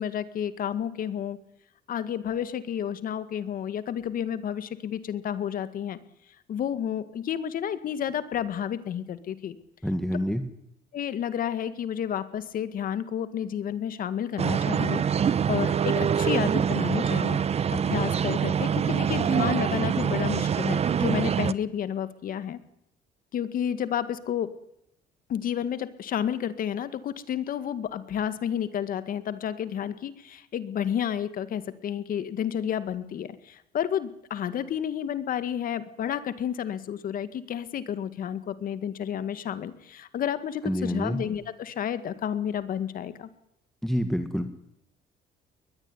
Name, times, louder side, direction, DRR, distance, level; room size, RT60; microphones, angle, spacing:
voice 1, 0.0-1.4 1.9-6.0 6.5-9.6 10.9-17.4 17.7-22.6 23.3-24.5 25.3-43.3, left 9 dB, 55° left, 12 dB, 2.0 m, -31 dB
voice 2, 9.8-10.4 40.6-41.2 43.8-44.5, equal, ahead, 8 dB, 1.8 m, -27 dB
sound 1, 14.4-21.5, right 7 dB, 40° right, 1.0 m, -25 dB
21.5 x 21.0 x 9.8 m, 0.80 s
cardioid pair, 110°, 17 cm